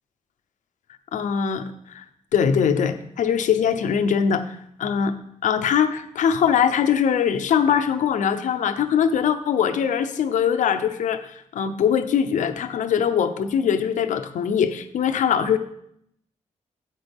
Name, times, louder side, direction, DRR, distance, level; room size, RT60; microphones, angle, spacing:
voice 1, 1.1-1.6 1.9-2.0 2.3-5.1 5.4-15.6, left 7 dB, 85° left, 9 dB, 0.7 m, -22 dB
9.9 x 7.9 x 3.5 m, 0.72 s
wide cardioid pair, 150°, 12 cm